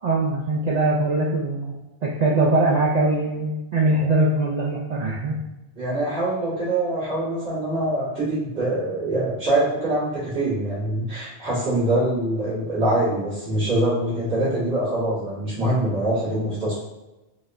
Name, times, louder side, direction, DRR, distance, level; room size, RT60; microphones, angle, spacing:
voice 1, 0.0-5.4, right 2 dB, 55° right, -5 dB, 0.5 m, -22 dB
voice 2, 5.8-16.8, right 1 dB, 75° right, -13 dB, 1.9 m, -24 dB
4.0 x 2.1 x 2.4 m, 1.0 s
omnidirectional pair, 1.0 m